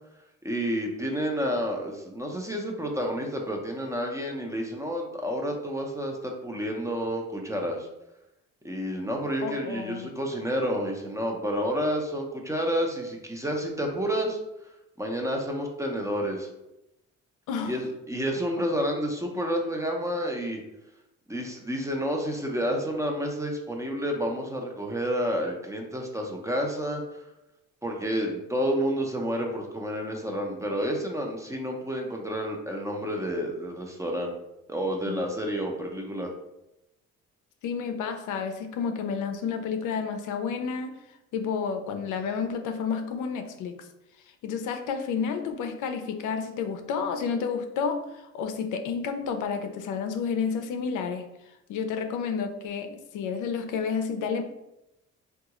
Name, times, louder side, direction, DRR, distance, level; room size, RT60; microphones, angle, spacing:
voice 1, 0.4-7.9 8.6-14.4 15.0-16.5 17.6-20.6 21.3-27.0 27.8-34.4 34.7-36.3, equal, 10° right, 1 dB, 0.6 m, -30 dB
voice 2, 9.4-10.1 17.5-17.7 35.1-35.2 37.6-41.0 41.3-43.8 44.4-51.3 51.7-54.4, left 6 dB, 80° left, 6 dB, 0.5 m, -30 dB
3.6 x 2.3 x 2.9 m, 0.89 s
cardioid pair, 90°, 30 cm